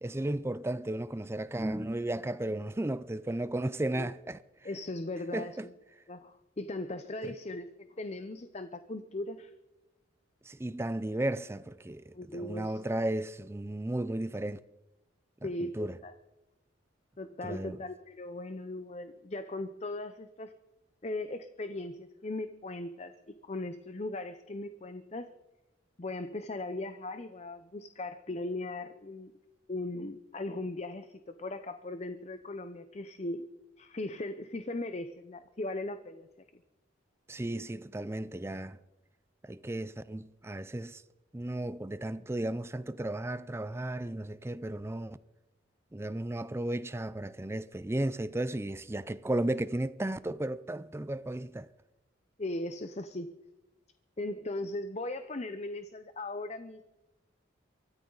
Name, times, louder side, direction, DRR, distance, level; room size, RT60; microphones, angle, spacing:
voice 1, 0.0-4.4 5.3-5.7 7.2-7.4 10.5-14.6 15.8-16.0 17.4-17.8 37.3-38.8 39.4-41.0 41.3-45.2 45.9-51.7, right 1 dB, 15° right, 0.4 m, -34 dB
voice 2, 4.6-5.7 6.1-7.7 8.0-9.5 12.1-12.8 15.4-16.1 17.2-20.5 21.0-25.3 26.0-29.3 29.7-33.5 33.8-36.3 52.4-53.3 54.2-56.8, left 2 dB, 35° left, 0.7 m, -38 dB
24.0 x 13.0 x 3.9 m
head